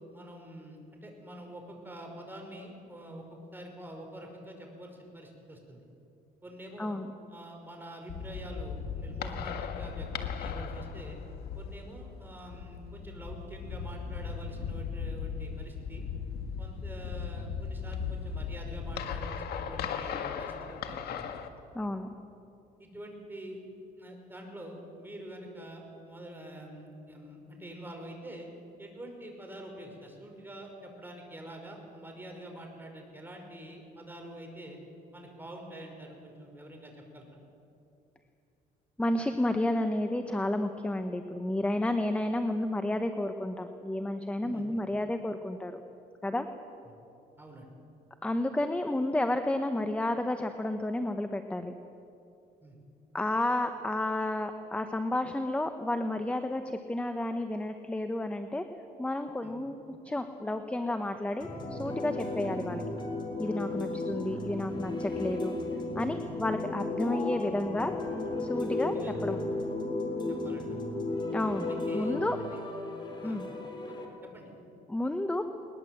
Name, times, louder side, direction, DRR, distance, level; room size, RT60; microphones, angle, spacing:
voice 1, 0.0-3.2 3.5-5.9 6.4-7.0 7.3-11.2 11.6-16.0 16.6-21.3 22.8-23.6 24.0-28.5 28.8-34.8 35.1-37.3 44.4-44.7 46.8-46.9 47.4-47.7 52.6-52.8 59.4-59.5 66.2-66.4 68.8-69.1 70.3-70.8 71.7-72.2 73.2-73.4 73.9-74.0 74.2-74.5, right 1 dB, 10° right, 2 dB, 5.2 m, -46 dB
sound 1, 8.1-21.5, left 6 dB, 70° left, 1.7 m, -37 dB
voice 2, 21.7-22.2 39.0-45.8 46.2-46.5 48.2-51.7 53.1-58.6 59.0-62.8 63.4-65.6 65.9-67.9 68.4-69.0 69.2-69.4 71.3-71.7 71.9-72.4 73.2-73.5 74.9-75.4, left 1 dB, 5° left, 7 dB, 1.0 m, -31 dB
sound 2, 61.4-74.0, left 2 dB, 25° left, 4.0 m, -34 dB
21.0 x 20.5 x 7.8 m, 2.7 s
cardioid pair, 110°, 17 cm